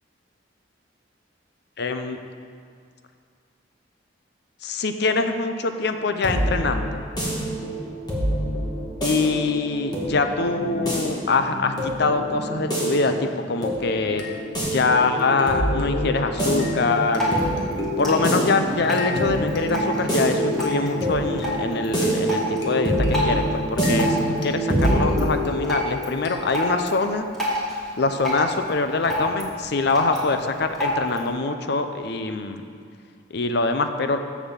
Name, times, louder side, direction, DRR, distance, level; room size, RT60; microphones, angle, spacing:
voice 1, 1.8-2.2 4.6-7.0 9.0-14.2 14.6-17.3 18.0-27.3 28.0-32.6 33.3-34.2, left 3 dB, 65° left, 7 dB, 0.6 m, -24 dB
sound 1, 5.8-25.3, right 1 dB, 25° left, 2.2 m, -26 dB
sound 2, 14.2-26.9, left 4 dB, 85° left, 1.4 m, -34 dB
Drip, 16.8-31.3, equal, ahead, 2.5 m, -30 dB
7.2 x 7.0 x 7.3 m, 2.2 s
head